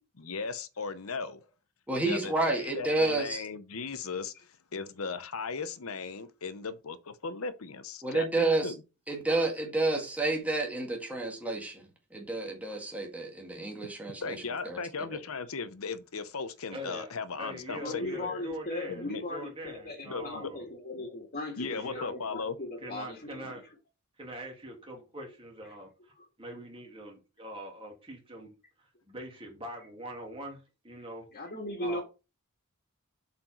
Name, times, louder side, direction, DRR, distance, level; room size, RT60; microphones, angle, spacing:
voice 1, 0.2-1.4 2.1-4.3 4.7-8.8 13.8-13.9 14.2-18.4 18.9-19.2 20.1-20.5 21.0-21.1 21.6-22.6, left 4 dB, 70° left, 0.8 m, -37 dB
voice 2, 1.9-3.4 8.0-8.7 9.1-11.8 12.1-14.4 14.6-14.8, right 2 dB, 5° right, 1.8 m, -30 dB
voice 3, 16.7-17.1 17.4-20.6 21.7-22.1 22.8-23.6 24.2-25.9 26.4-28.5 29.1-31.3 31.8-32.0, right 1 dB, 25° right, 2.7 m, -43 dB
voice 4, 17.7-23.6 26.2-26.3 29.8-29.9 31.3-32.0, left 2 dB, 40° left, 1.8 m, -38 dB
7.8 x 4.4 x 4.5 m
head